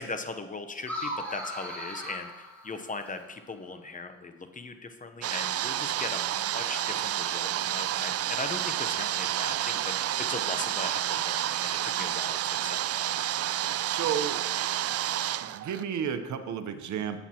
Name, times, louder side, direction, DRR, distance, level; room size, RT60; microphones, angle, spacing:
voice 1, 0.0-13.1, left 3 dB, 25° left, 8 dB, 0.8 m, -39 dB
sound 1, 0.8-3.3, equal, 5° left, 3.5 m, -37 dB
sound 2, 5.2-15.8, right 12 dB, 55° right, 0.4 m, -30 dB
voice 2, 13.8-14.4 15.5-17.2, right 8 dB, 70° right, 8 dB, 0.9 m, -32 dB
13.5 x 8.1 x 2.9 m, 1.1 s
cardioid pair, 90°, 30 cm